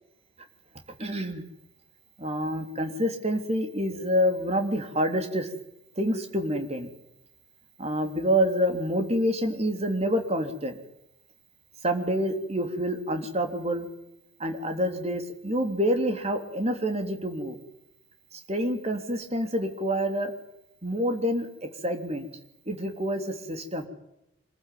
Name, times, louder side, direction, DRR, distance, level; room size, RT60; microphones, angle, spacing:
voice 1, 1.0-1.4 2.2-5.5 6.0-6.9 7.8-10.7 11.8-13.9 14.4-17.6 18.3-20.3 20.8-22.3 22.7-23.9, equal, 35° right, 5 dB, 3.4 m, -27 dB
26.0 x 15.5 x 9.5 m, 0.84 s
head